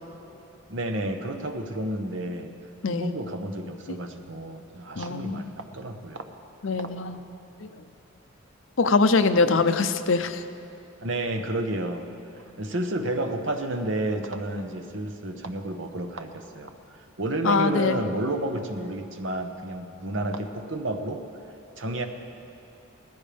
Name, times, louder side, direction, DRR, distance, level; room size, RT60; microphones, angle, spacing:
voice 1, 0.7-2.5 2.9-6.3 11.0-12.1 12.4-16.7 17.2-21.2 21.8-22.0, right 1 dB, 65° right, 5 dB, 1.0 m, -31 dB
voice 2, 5.0-5.5 6.6-7.2 7.6-7.8 8.8-10.4 17.4-18.0, left 4 dB, 70° left, 10 dB, 0.6 m, -23 dB
19.5 x 15.0 x 3.4 m, 2.9 s
head